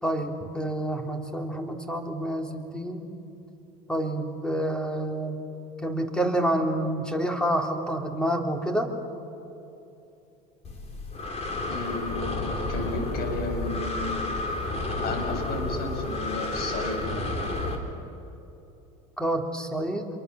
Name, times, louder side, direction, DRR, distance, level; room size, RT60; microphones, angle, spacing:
voice 1, 0.0-3.1 3.9-5.4 5.8-8.9 19.2-20.1, right 1 dB, 5° left, 3 dB, 3.4 m, -28 dB
Breathing, 10.6-17.8, left 2 dB, 35° left, 4.3 m, -31 dB
voice 2, 11.7-14.2 15.0-17.2, left 3 dB, 55° left, 4 dB, 6.6 m, -33 dB
28.5 x 23.5 x 7.1 m, 2.9 s
supercardioid pair, 90°, 19 cm